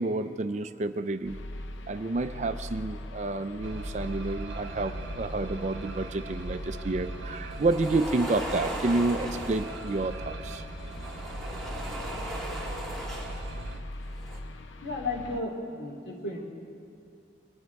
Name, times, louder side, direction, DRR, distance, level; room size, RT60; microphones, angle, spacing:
voice 1, 0.0-1.4 1.9-10.6, right 2 dB, 40° right, 10 dB, 0.4 m, -29 dB
sound 1, 1.2-15.4, left 1 dB, 85° left, 0.6 m, -41 dB
sound 2, 3.6-13.8, right 2 dB, 70° right, 0.8 m, -40 dB
sound 3, 7.5-10.1 10.8-13.6 14.0-14.4, equal, ahead, 1.6 m, -38 dB
voice 2, 14.8-16.5, left 2 dB, 60° left, -3 dB, 3.1 m, -34 dB
23.0 x 11.0 x 4.7 m, 2.6 s
head